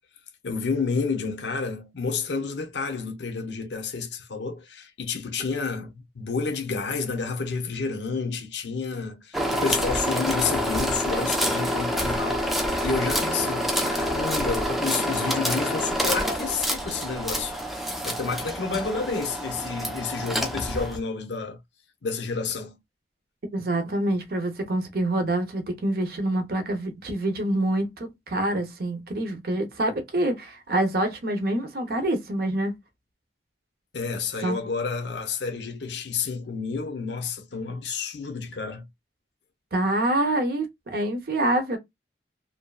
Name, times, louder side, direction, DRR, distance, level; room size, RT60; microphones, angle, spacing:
voice 1, 0.4-17.6 18.0-21.6 22.0-22.8 33.9-38.9, left 5 dB, 80° left, 0.7 m, -30 dB
sound 1, 9.3-21.0, equal, ahead, 0.4 m, -27 dB
voice 2, 23.5-32.7 34.4-34.6 39.7-41.8, right 1 dB, 55° right, 0.6 m, -26 dB
2.6 x 2.2 x 2.2 m
head